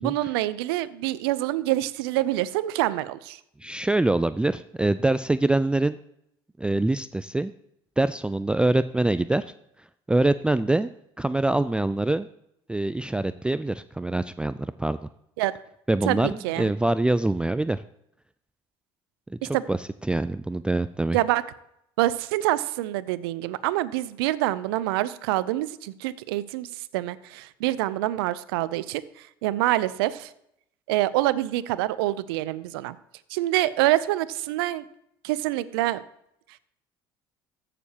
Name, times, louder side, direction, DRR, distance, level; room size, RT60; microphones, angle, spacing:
voice 1, 0.0-3.4 15.4-15.5 16.1-16.7 19.4-19.6 21.1-21.5 22.0-26.7 26.9-30.3 30.9-33.0 33.3-34.8 35.2-36.0, right 16 dB, 80° right, 17 dB, 0.5 m, -26 dB
voice 2, 3.6-6.0 6.6-7.5 8.0-9.5 10.1-10.9 11.2-12.3 12.7-15.0 15.9-17.8 19.3-21.2, right 2 dB, 10° right, 14 dB, 0.3 m, -24 dB
14.5 x 6.8 x 2.9 m, 0.76 s
hypercardioid pair, 70°, 12 cm